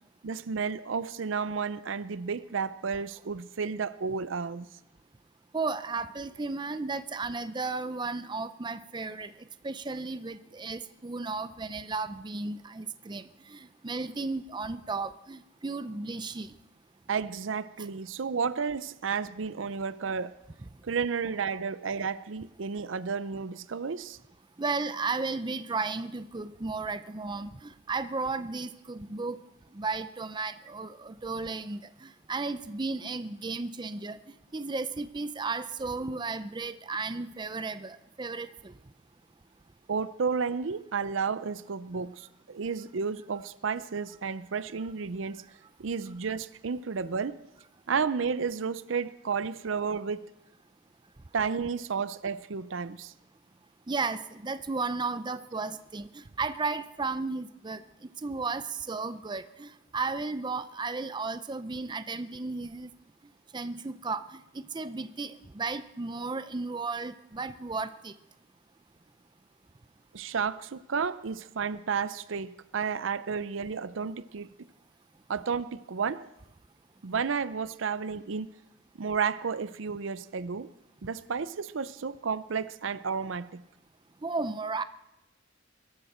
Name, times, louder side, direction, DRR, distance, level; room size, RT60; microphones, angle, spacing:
voice 1, 0.2-4.7 17.1-20.4 20.8-24.2 39.9-45.4 45.8-47.4 47.9-50.3 51.3-53.1 70.1-74.5 75.3-76.3 77.0-78.5 79.0-80.7 81.0-83.6, right 5 dB, 75° right, 0.6 m, -32 dB
voice 2, 5.5-9.3 9.6-16.6 24.6-29.4 29.7-38.7 53.9-62.9 63.5-68.1 84.2-84.8, right 3 dB, 25° right, 0.5 m, -34 dB
22.5 x 13.0 x 4.3 m
head